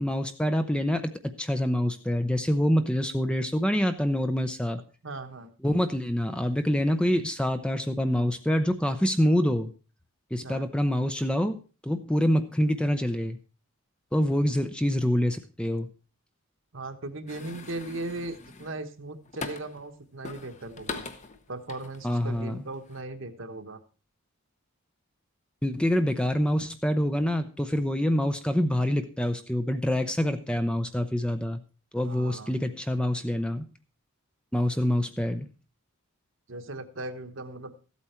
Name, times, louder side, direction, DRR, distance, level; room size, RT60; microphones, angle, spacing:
voice 1, 0.0-4.8 5.6-9.7 10.3-11.6 11.8-13.4 14.1-15.9 22.0-22.6 25.6-31.6 31.9-33.7 34.5-35.5, equal, 5° left, 8 dB, 0.6 m, -26 dB
voice 2, 5.0-5.5 10.4-10.7 16.7-21.0 21.5-23.8 32.0-32.5 36.5-37.7, right 2 dB, 55° right, 9 dB, 1.1 m, -38 dB
sound 1, 17.3-19.9 20.2-22.4 22.8-23.0, left 4 dB, 30° left, 0.9 m, -41 dB
14.5 x 8.4 x 4.4 m, 0.35 s
head